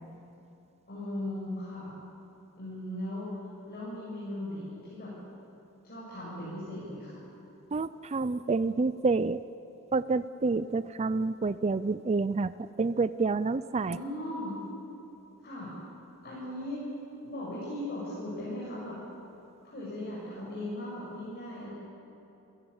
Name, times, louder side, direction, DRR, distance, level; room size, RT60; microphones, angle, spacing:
voice 1, 0.9-1.9 2.6-3.3 3.6-5.1 5.8-7.3 13.8-14.5 15.4-15.7 16.2-16.8 17.2-19.0 19.6-21.7, left 1 dB, 45° left, -7 dB, 7.3 m, -38 dB
voice 2, 7.7-9.4 9.9-14.0, right 3 dB, 30° right, 14 dB, 0.4 m, -28 dB
28.0 x 17.0 x 8.8 m, 2.8 s
head